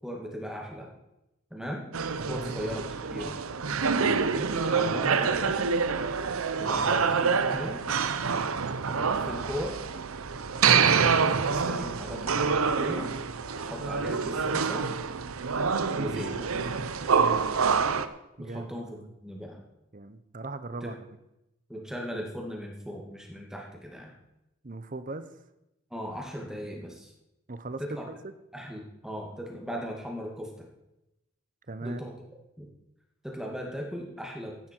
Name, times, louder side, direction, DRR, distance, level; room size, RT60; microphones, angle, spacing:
voice 1, 0.0-0.9 1.5-1.8 2.3-2.8 3.1-3.4 4.2-5.7 6.6-7.8 8.9-9.7 10.6-13.1 13.6-14.8 15.9-16.5 18.4-19.6 21.7-24.1 25.9-27.1 27.8-28.0 28.5-30.7 31.8-32.1 32.6-32.7 33.2-34.5, equal, 5° right, 0 dB, 2.1 m, -37 dB
sound 1, 1.9-18.1, right 5 dB, 85° right, 0.8 m, -26 dB
voice 2, 2.2-2.5 3.8-4.2 17.2-17.6 18.4-19.1 19.9-21.0 24.6-25.3 27.5-28.3 31.7-32.0, right 2 dB, 40° right, 11 dB, 0.8 m, -39 dB
15.0 x 10.0 x 4.5 m, 0.91 s
head